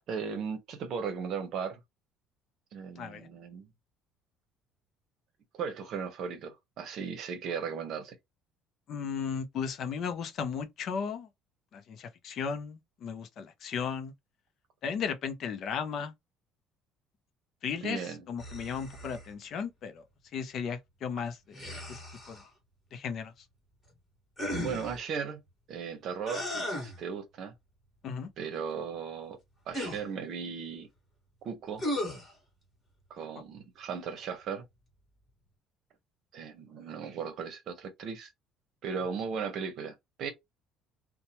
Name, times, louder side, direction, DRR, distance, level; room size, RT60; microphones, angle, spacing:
voice 1, 0.1-1.8 2.7-3.7 5.5-8.2 17.8-18.3 24.6-25.4 25.7-27.5 28.4-29.4 29.7-30.9 31.4-31.8 33.1-34.6 36.3-38.3 38.8-40.3, right 6 dB, 50° right, 0.8 m, -37 dB
voice 2, 3.0-3.3 8.9-11.3 11.7-14.1 14.8-16.1 17.6-20.0 20.3-21.6 21.9-22.0 22.3-22.4 22.9-23.3 28.0-28.3, left 6 dB, 45° left, 0.5 m, -35 dB
sound 1, 18.4-19.3 21.5-22.5 24.4-25.0 26.2-27.0 29.7-30.0 31.8-32.3, left 1 dB, 15° left, 1.6 m, -36 dB
2.8 x 2.1 x 2.9 m
cardioid pair, 150°, 0 cm